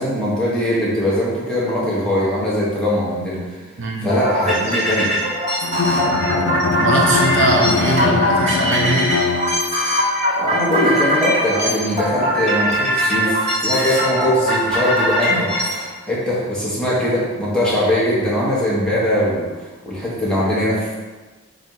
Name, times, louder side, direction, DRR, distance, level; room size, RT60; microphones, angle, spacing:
voice 1, 0.0-3.6 4.0-5.2 10.4-20.9, left 1 dB, 5° left, -7 dB, 1.0 m, -21 dB
voice 2, 3.8-4.1 6.8-9.1, right 2 dB, 65° right, -1 dB, 0.7 m, -21 dB
sound 1, 4.1-15.9, equal, 35° right, 1.3 m, -21 dB
Bowed string instrument, 5.6-9.9, left 4 dB, 80° left, 0.4 m, -22 dB
4.1 x 2.6 x 4.6 m, 1.3 s
head